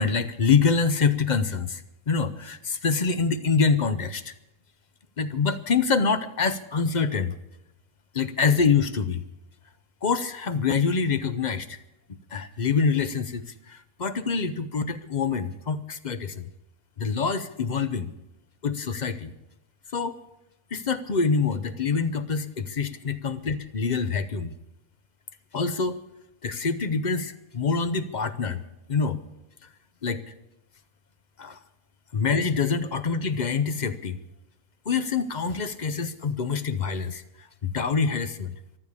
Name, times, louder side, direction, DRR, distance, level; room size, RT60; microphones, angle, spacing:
voice 1, 0.0-4.2 5.2-7.3 8.1-9.2 10.0-11.8 12.3-16.5 17.0-18.1 18.6-19.3 19.9-20.2 20.7-24.5 25.5-26.0 26.4-28.6 28.9-29.2 30.0-30.3 31.4-31.6 32.1-34.2 34.9-38.5, left 5 dB, 40° left, 12 dB, 0.7 m, -25 dB
14.5 x 12.5 x 6.9 m, 0.91 s
omnidirectional pair, 1.5 m